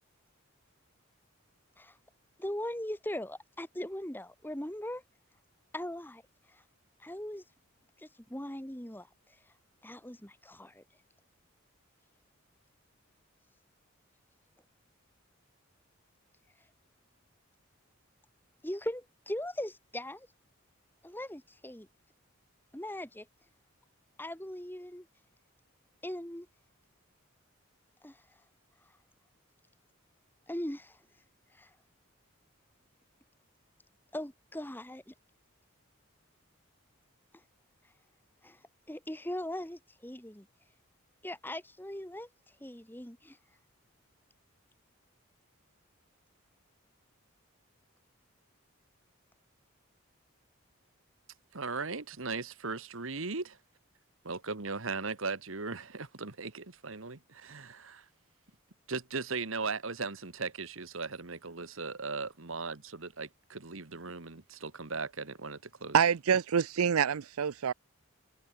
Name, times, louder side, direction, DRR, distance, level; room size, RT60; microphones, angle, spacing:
voice 1, 2.4-5.0 5.7-6.2 6.5-6.6 7.0-7.4 8.0-9.4 9.8-10.8 18.6-20.3 21.0-21.9 22.7-23.3 24.2-25.1 26.0-26.5 28.0-28.2 30.5-31.0 31.5-31.7 34.1-35.1 37.3-37.4 38.4-38.6 38.9-40.5 41.2-42.3 42.6-43.4, left 1 dB, 10° left, 2.0 m, -40 dB
voice 2, 51.5-53.6 54.2-58.0 58.9-66.0, right 4 dB, 65° right, 1.6 m, -38 dB
voice 3, 65.9-67.7, right 7 dB, 90° right, 0.5 m, -26 dB
head